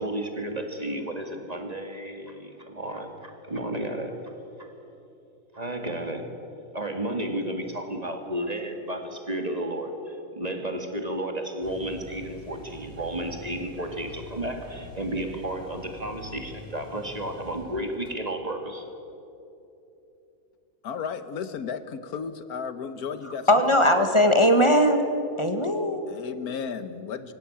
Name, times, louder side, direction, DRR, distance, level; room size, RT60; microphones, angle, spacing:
voice 1, 0.0-4.2 4.6-4.7 5.5-6.3 6.7-18.9, right 1 dB, 25° right, 5 dB, 1.9 m, -32 dB
sound 1, 11.6-18.1, equal, 35° left, 3.5 m, -45 dB
voice 2, 20.8-23.6 26.1-27.3, left 6 dB, 75° left, 12 dB, 1.6 m, -34 dB
voice 3, 23.5-25.1 25.4-26.0, equal, 20° left, 6 dB, 1.6 m, -19 dB
24.0 x 16.5 x 8.6 m, 2.9 s
omnidirectional pair, 1.6 m